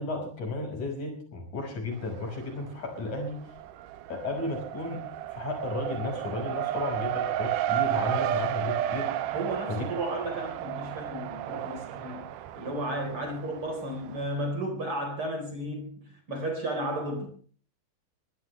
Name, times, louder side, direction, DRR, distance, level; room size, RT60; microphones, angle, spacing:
voice 1, 0.0-3.4 4.1-5.1 5.4-9.1 9.7-9.8, left 2 dB, 50° left, 7.3 m, -33 dB
Race car auto racing, 1.9-2.7 3.0-14.3, right 12 dB, 70° right, 2.3 m, -33 dB
voice 2, 9.3-12.3 12.6-17.3, right 1 dB, 35° right, 5.1 m, -33 dB
23.5 x 16.5 x 3.4 m
omnidirectional pair, 4.3 m